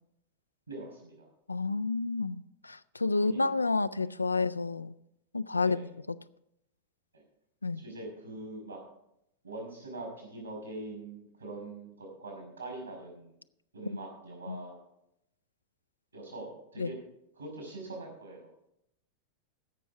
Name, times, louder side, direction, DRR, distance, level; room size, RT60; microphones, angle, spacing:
voice 1, 0.7-1.3 3.1-3.5 4.0-4.1 5.6-5.9 7.7-8.8 9.4-13.3 13.7-14.8 16.1-16.9 17.4-18.7, right 2 dB, 80° right, 2 dB, 5.3 m, -43 dB
voice 2, 1.5-4.9 5.3-5.9 7.6-7.8 13.9-14.0 14.5-14.6 16.8-16.9, left 3 dB, 80° left, 15 dB, 0.3 m, -30 dB
16.0 x 6.2 x 5.5 m, 0.81 s
figure-of-eight pair, 90°, 0 cm